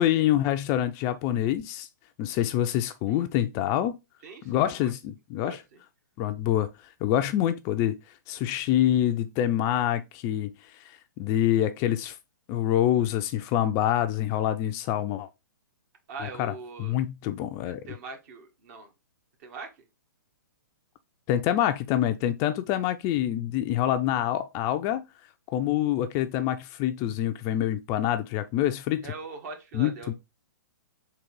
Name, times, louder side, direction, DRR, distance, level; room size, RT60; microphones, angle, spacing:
voice 1, 0.0-1.9 2.2-4.0 4.5-5.6 6.2-6.7 7.0-8.0 8.3-10.5 10.8-12.2 12.5-15.3 16.2-16.5 16.8-17.8 21.3-25.0 25.5-29.1 29.7-30.1, left 12 dB, 30° left, 0.4 m, -26 dB
voice 2, 4.2-4.9 5.4-5.8 16.1-16.9 17.7-18.9 19.4-19.7 29.0-30.1, right 4 dB, 50° right, 1.4 m, -42 dB
3.9 x 2.9 x 4.6 m
hypercardioid pair, 130°, 11 cm